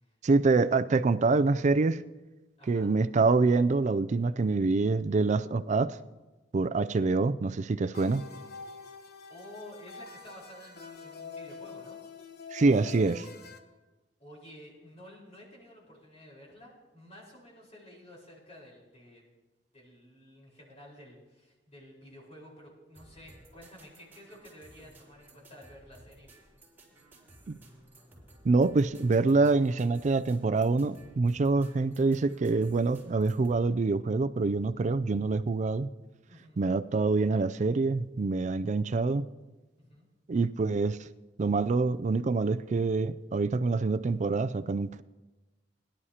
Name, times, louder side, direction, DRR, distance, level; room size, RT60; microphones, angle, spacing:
voice 1, 0.2-2.0 2.7-6.0 6.5-8.3 12.5-13.3 27.5-27.6 28.4-35.9 36.6-39.3 40.3-41.1 41.4-45.0, right 3 dB, 40° right, 14 dB, 0.4 m, -26 dB
voice 2, 2.6-2.9 9.3-12.0 14.2-19.3 19.7-26.3 36.3-36.6 39.8-40.1, left 1 dB, 35° left, -4 dB, 4.4 m, -51 dB
sound 1, 7.9-13.6, left 4 dB, 60° left, 1.0 m, -46 dB
sound 2, 22.9-33.6, right 1 dB, 10° right, 4.6 m, -56 dB
22.5 x 11.5 x 2.9 m, 1.1 s
head